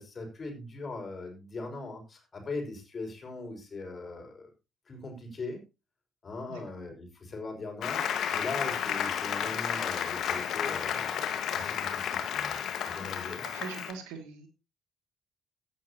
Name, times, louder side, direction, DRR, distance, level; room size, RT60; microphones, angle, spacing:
voice 1, 0.0-4.5 4.9-5.6 6.2-8.0 8.3-11.2 11.5-12.6 12.8-13.5, left 3 dB, 35° left, 3 dB, 5.8 m, -40 dB
Applause, 7.8-13.9, left 8 dB, 55° left, 1.6 m, -32 dB
voice 2, 13.4-14.5, right 6 dB, 70° right, 5 dB, 2.4 m, -41 dB
16.0 x 11.0 x 2.9 m, 0.29 s
figure-of-eight pair, 45°, 0 cm